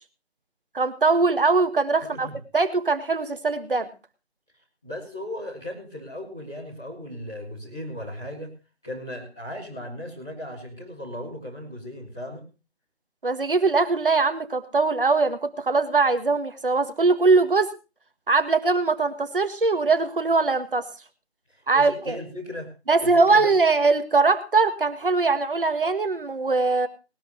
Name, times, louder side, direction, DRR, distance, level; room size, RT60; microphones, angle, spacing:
voice 1, 0.7-2.3 2.5-3.9 13.2-17.7 18.3-20.9 21.7-22.2 22.9-26.9, right 3 dB, 55° right, 10 dB, 1.8 m, -21 dB
voice 2, 4.8-8.5 8.8-12.4 21.5-22.7 23.0-23.5, left 1 dB, 5° left, -12 dB, 0.8 m, -36 dB
20.0 x 12.5 x 3.1 m, 0.30 s
figure-of-eight pair, 155°, 33 cm